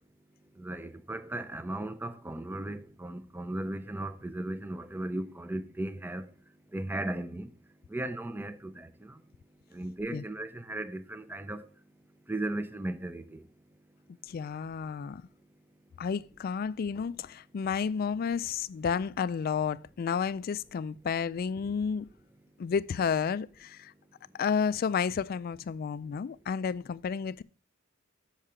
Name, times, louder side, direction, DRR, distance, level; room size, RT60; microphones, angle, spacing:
voice 1, 0.6-6.3 6.7-7.5 7.9-9.2 9.7-11.7 12.3-13.4, right 1 dB, 10° right, 0.5 m, -36 dB
voice 2, 14.3-15.2 16.0-22.1 22.6-23.9 24.4-27.4, left 6 dB, 50° left, 0.3 m, -31 dB
7.3 x 5.5 x 4.9 m
head